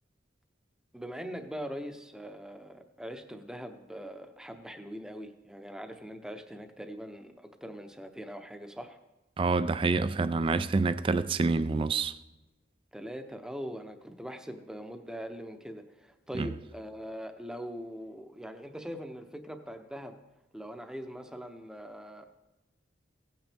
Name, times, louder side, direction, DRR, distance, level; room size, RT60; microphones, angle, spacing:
voice 1, 0.9-9.0 12.9-20.2 20.5-22.4, equal, 5° right, 0.7 m, -42 dB
voice 2, 9.4-12.2 16.4-16.5, right 3 dB, 30° right, 0.3 m, -27 dB
16.5 x 9.0 x 3.4 m
head